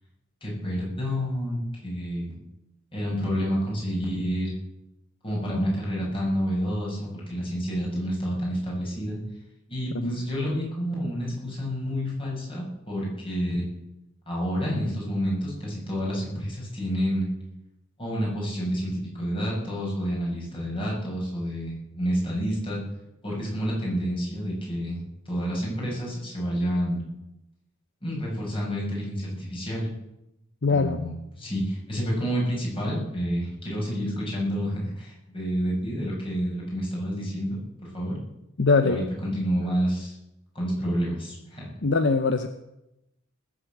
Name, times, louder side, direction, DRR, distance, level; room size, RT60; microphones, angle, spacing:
voice 1, 0.4-2.4 2.9-4.5 5.2-9.2 9.7-13.6 14.3-17.3 18.0-22.8 23.2-25.0 25.3-27.0 28.0-29.9 30.7-37.6 37.9-38.2 38.8-40.2 40.5-41.7, equal, 25° left, -4 dB, 7.1 m, -29 dB
voice 2, 30.6-31.0 38.6-39.0 41.8-42.5, left 4 dB, 60° left, 9 dB, 0.8 m, -22 dB
19.5 x 8.2 x 7.9 m, 0.90 s
head